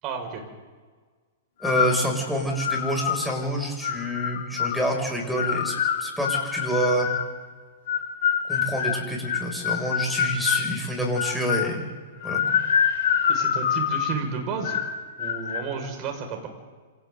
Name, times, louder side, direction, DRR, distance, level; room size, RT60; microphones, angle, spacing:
voice 1, 0.0-0.4 13.3-14.8 15.2-16.5, right 5 dB, 40° right, 3 dB, 6.1 m, -32 dB
sound 1, 1.6-2.0 2.6-3.2 3.8-4.8 5.4-7.3 7.9-10.7 11.2-11.7 12.2-14.2 14.6-14.9 15.2-15.6, left 8 dB, 55° left, 4.4 m, -25 dB
voice 2, 1.6-5.7 6.0-7.1 8.5-11.9 12.2-12.6, equal, ahead, 0 dB, 7.0 m, -27 dB
28.5 x 28.0 x 4.1 m, 1.5 s
hypercardioid pair, 110°, 0 cm